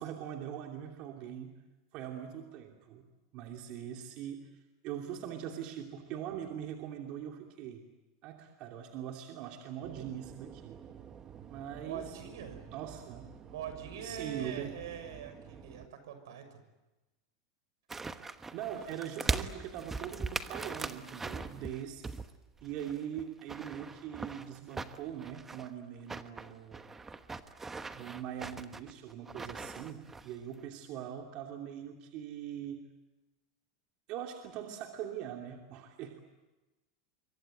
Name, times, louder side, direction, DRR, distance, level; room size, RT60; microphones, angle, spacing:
voice 1, 0.0-1.5 1.9-3.0 3.3-4.5 4.8-7.8 8.2-10.8 11.5-12.2 12.7-13.3 14.0-14.7 18.5-22.1 22.6-26.9 27.9-32.8 34.1-36.2, right 10 dB, 50° right, 2 dB, 2.8 m, -42 dB
sound 1, 9.8-15.9, right 8 dB, 25° right, 1.5 m, -51 dB
voice 2, 11.7-12.7 13.4-16.6, right 8 dB, 85° right, 9 dB, 6.2 m, -43 dB
sound 2, 17.9-22.3 22.6-25.7 26.1-30.3 30.6-30.7, right 4 dB, 10° right, 1.2 m, -40 dB
26.5 x 23.5 x 9.3 m, 1.1 s
supercardioid pair, 140°, 2 cm